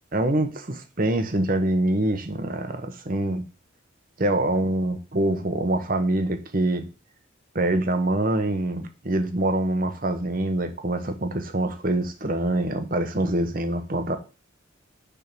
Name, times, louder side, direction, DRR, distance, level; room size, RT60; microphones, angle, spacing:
voice 1, 0.1-3.4 4.2-6.8 7.5-14.2, right 1 dB, 45° right, 1.0 m, -25 dB
6.8 x 3.7 x 6.0 m
head